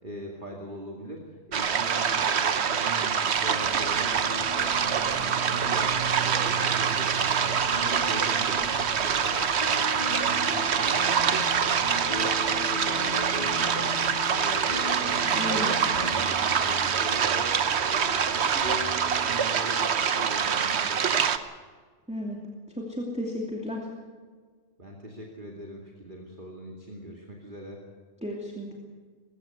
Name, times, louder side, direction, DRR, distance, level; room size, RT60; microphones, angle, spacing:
voice 1, 0.0-6.0 6.2-9.8 10.1-11.5 11.8-13.9 14.2-17.6 17.9-18.8 19.2-21.3 24.8-27.8, right 1 dB, 40° right, -1 dB, 2.5 m, -40 dB
sound 1, 1.5-21.4, right 7 dB, 60° right, 1.2 m, -25 dB
sound 2, 3.1-15.1, left 3 dB, 55° left, 6.5 m, -45 dB
sound 3, 3.6-19.5, equal, 40° left, 2.7 m, -39 dB
voice 2, 15.4-15.7 22.1-22.4 22.7-23.9 28.2-28.8, left 1 dB, 5° right, -2 dB, 2.6 m, -33 dB
21.0 x 16.5 x 8.2 m, 1.5 s
omnidirectional pair, 1.3 m